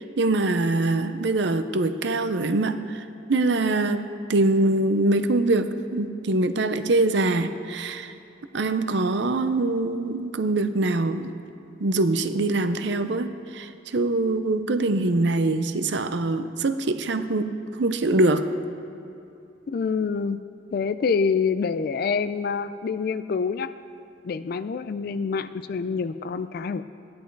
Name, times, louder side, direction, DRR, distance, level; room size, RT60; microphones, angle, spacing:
voice 1, 0.2-4.0 4.3-8.1 8.5-11.3 11.8-18.5, right 2 dB, 60° right, 10 dB, 0.6 m, -23 dB
voice 2, 19.7-20.4 20.7-23.7 24.2-26.8, left 5 dB, 50° left, 12 dB, 0.3 m, -26 dB
14.0 x 10.5 x 4.6 m, 2.8 s
head